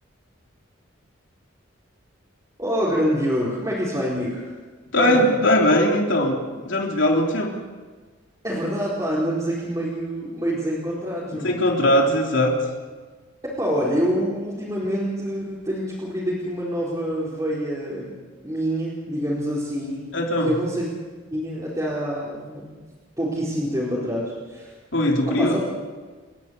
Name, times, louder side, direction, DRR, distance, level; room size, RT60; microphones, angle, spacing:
voice 1, 2.6-4.5 5.0-5.3 8.4-11.5 13.4-18.2 18.4-20.0 20.4-20.9 21.3-22.8 23.2-24.7 25.4-25.6, equal, 15° right, -8 dB, 4.4 m, -26 dB
voice 2, 4.9-6.4 6.6-7.5 11.3-12.6 20.1-20.5 24.9-25.6, left 1 dB, 65° left, 1 dB, 3.4 m, -20 dB
30.0 x 12.0 x 8.3 m, 1.4 s
head